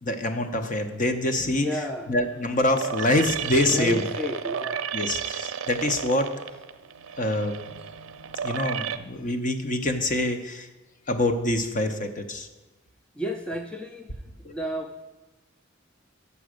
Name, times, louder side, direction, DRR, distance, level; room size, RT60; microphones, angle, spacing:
voice 1, 0.0-4.0 4.9-6.3 7.2-7.5 8.4-10.7 11.1-12.5 14.4-14.5, left 1 dB, 40° left, 7 dB, 0.7 m, -25 dB
sound 1, 1.4-9.0, right 7 dB, 85° right, 0.5 m, -33 dB
voice 2, 1.6-2.1 3.7-4.8 13.2-14.0 14.5-15.0, right 1 dB, 5° left, 5 dB, 0.4 m, -31 dB
7.0 x 6.0 x 6.3 m, 1.2 s
head